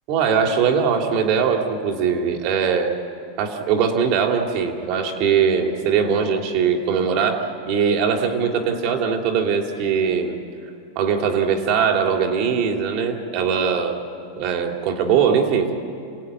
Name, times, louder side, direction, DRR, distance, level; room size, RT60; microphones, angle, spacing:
voice 1, 0.1-3.0 3.4-10.4 10.9-14.0 14.4-15.7, right 6 dB, 45° right, 3 dB, 2.9 m, -21 dB
28.0 x 18.5 x 9.7 m, 2.6 s
supercardioid pair, 165°, 0 cm